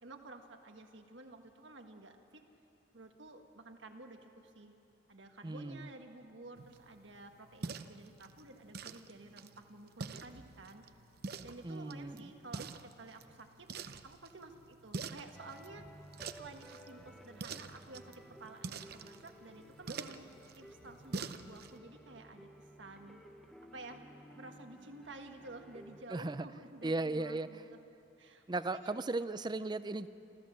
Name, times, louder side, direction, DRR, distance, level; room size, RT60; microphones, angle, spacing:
voice 1, 0.0-2.4 2.9-4.7 5.1-10.8 11.4-15.8 16.4-20.3 20.5-23.2 23.7-24.0 24.4-27.8 28.2-29.0, right 2 dB, 80° right, 5 dB, 1.6 m, -52 dB
voice 2, 5.4-5.9 11.6-12.3 26.1-26.5 26.8-27.5 28.5-30.1, right 2 dB, 25° right, 14 dB, 0.5 m, -36 dB
sound 1, 6.6-21.8, right 4 dB, 55° right, 0.7 m, -47 dB
sound 2, 15.3-26.0, equal, ahead, 1.0 m, -56 dB
28.0 x 14.0 x 7.5 m, 2.8 s
head